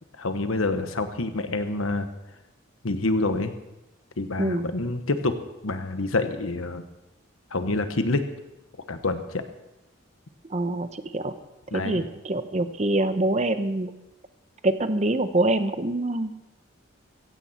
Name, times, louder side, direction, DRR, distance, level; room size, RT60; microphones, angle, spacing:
voice 1, 0.2-2.1 2.8-3.5 4.2-5.4 5.6-6.8 7.5-8.2 8.9-9.4 11.7-12.0, left 2 dB, 90° left, 9 dB, 1.3 m, -27 dB
voice 2, 10.5-10.9 11.1-11.3 11.7-13.9 14.6-16.3, right 2 dB, 35° right, 11 dB, 0.8 m, -25 dB
16.0 x 15.5 x 4.3 m, 0.92 s
head